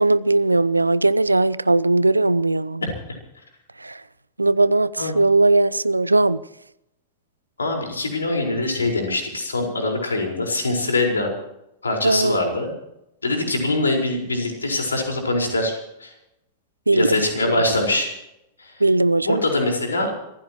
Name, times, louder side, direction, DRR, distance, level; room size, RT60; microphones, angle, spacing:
voice 1, 0.0-2.8 3.8-4.0 4.4-6.4 12.0-12.4 16.9-17.6 18.8-19.4, right 2 dB, 90° right, 0.5 m, -19 dB
voice 2, 7.6-11.4 11.8-12.7 13.2-15.7 16.0-16.1 16.9-18.1 18.6-18.8 19.2-20.1, left 2 dB, 80° left, 4.8 m, -23 dB
26.5 x 15.5 x 3.0 m
figure-of-eight pair, 95°, 0 cm